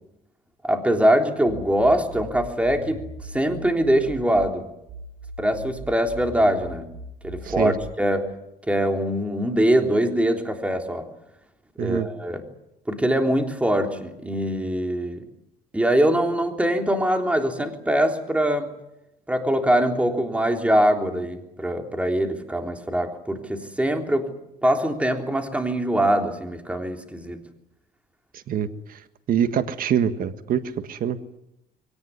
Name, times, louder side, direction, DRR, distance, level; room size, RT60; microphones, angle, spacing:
voice 1, 0.6-4.7 5.4-6.9 7.2-8.3 8.6-11.1 11.8-12.4 12.9-15.2 15.7-18.7 19.3-24.3 24.6-27.4, right 1 dB, 5° right, 4 dB, 3.6 m, -23 dB
sound 1, 1.5-4.5 4.9-7.9, right 2 dB, 75° right, 5.5 m, -39 dB
voice 2, 28.5-29.0 29.3-30.6 30.9-31.2, right 8 dB, 60° right, 10 dB, 1.6 m, -24 dB
23.0 x 18.5 x 9.7 m, 0.87 s
cardioid pair, 110°, 17 cm